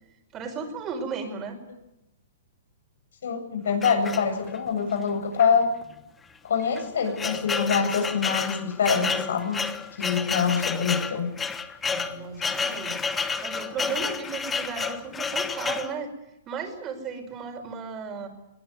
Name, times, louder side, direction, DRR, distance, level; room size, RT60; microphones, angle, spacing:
voice 1, 0.3-1.6 11.9-13.0 13.4-16.1 16.5-18.3, right 5 dB, 20° right, 5 dB, 5.3 m, -35 dB
voice 2, 3.2-5.7 6.4-9.6 10.0-11.3, left 6 dB, 75° left, 6 dB, 8.0 m, -25 dB
sound 1, 3.8-4.7 5.4-5.5 5.8-5.9 6.6-15.9, left 5 dB, 10° left, 1.1 m, -30 dB
21.5 x 19.5 x 9.5 m, 0.88 s
hypercardioid pair, 155°, 0 cm